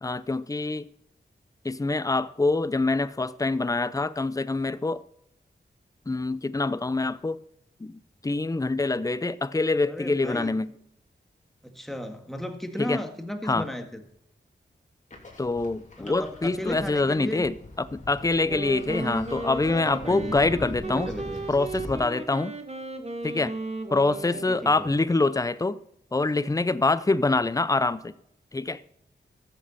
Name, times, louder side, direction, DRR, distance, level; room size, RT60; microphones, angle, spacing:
voice 1, 0.0-0.9 1.6-5.0 6.1-7.4 7.8-10.7 12.8-13.0 13.5-13.7 15.4-21.1 21.5-22.6 23.2-23.6 23.9-25.8 26.1-28.1 28.5-28.8, left 3 dB, 20° left, 0.6 m, -25 dB
voice 2, 9.8-10.6 11.6-14.0 16.0-17.4 19.6-20.4 20.7-21.4 24.3-24.9, equal, ahead, 1.8 m, -35 dB
sound 1, 15.1-21.9, left 2 dB, 40° left, 2.9 m, -43 dB
Wind instrument woodwind instrument, 18.3-24.9, right 3 dB, 35° right, 1.5 m, -36 dB
13.5 x 7.6 x 4.2 m
cardioid pair, 50°, 19 cm